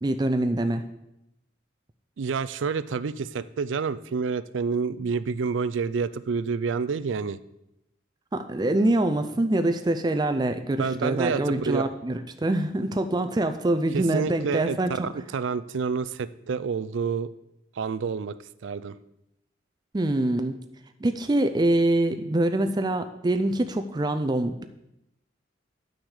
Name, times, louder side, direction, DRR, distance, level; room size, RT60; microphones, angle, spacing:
voice 1, 0.0-0.9 8.3-15.1 19.9-20.6 21.0-24.6, right 1 dB, 20° right, 7 dB, 0.4 m, -25 dB
voice 2, 2.2-7.4 10.8-11.8 13.9-17.3 17.8-18.4 18.6-19.0, right 5 dB, 85° right, 15 dB, 0.4 m, -28 dB
10.0 x 6.2 x 4.9 m, 0.86 s
head